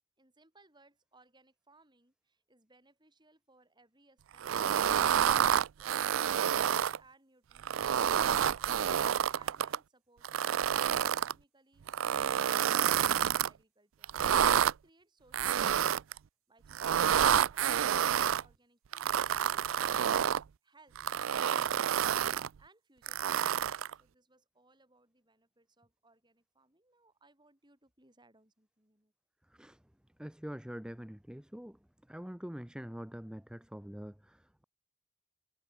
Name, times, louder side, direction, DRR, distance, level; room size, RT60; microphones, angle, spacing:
voice 1, 0.2-5.0 5.8-8.3 8.6-14.1 14.5-16.0 16.5-19.2 20.6-21.0 22.6-29.1, right 2 dB, 20° right, 6.2 m, -65 dB
sound 1, 4.4-7.0 7.6-9.8 10.2-11.3 11.9-13.5 14.0-14.7 15.3-16.2 16.7-18.4 18.9-20.4 20.9-22.5 23.1-23.9, right 9 dB, 80° right, 0.4 m, -28 dB
voice 2, 30.2-31.8 32.1-34.6, equal, 5° right, 0.5 m, -44 dB
head